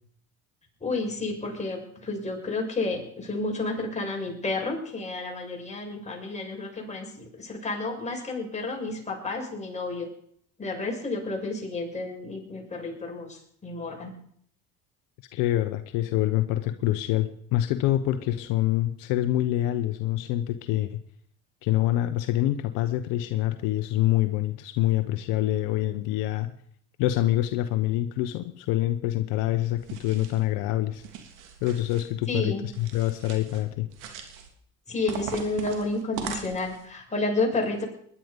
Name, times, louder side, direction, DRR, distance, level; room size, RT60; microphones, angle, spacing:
voice 1, 0.8-10.1 10.6-14.1 32.3-32.6 34.9-37.8, left 3 dB, 20° left, 0 dB, 6.3 m, -31 dB
voice 2, 15.3-21.0 21.6-26.5 27.0-31.0 31.6-33.9, left 14 dB, 75° left, 9 dB, 1.1 m, -26 dB
sound 1, 29.8-30.4 30.9-32.1 32.7-33.6 33.9-34.5 35.1-36.9, right 7 dB, 70° right, 3.2 m, -40 dB
20.0 x 11.0 x 5.3 m, 0.64 s
supercardioid pair, 85°, 32 cm